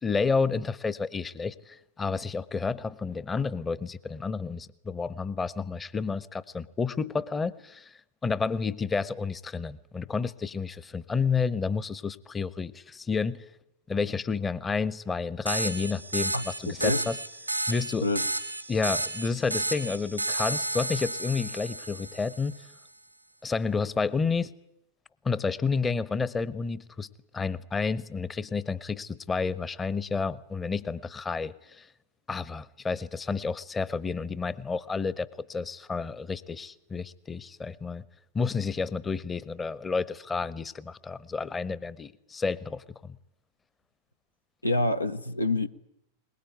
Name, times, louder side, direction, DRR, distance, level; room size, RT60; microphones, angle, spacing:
voice 1, 0.0-13.4 13.9-17.2 17.7-18.1 18.7-22.6 23.4-24.5 25.2-27.1 27.3-31.9 32.3-38.0 38.3-43.2, left 4 dB, 15° left, 0.9 m, -30 dB
sound 1, 15.5-22.6, right 2 dB, 90° right, 1.4 m, -32 dB
voice 2, 44.6-45.7, left 2 dB, 85° left, 0.9 m, -26 dB
22.5 x 20.5 x 9.3 m
figure-of-eight pair, 90°, 0 cm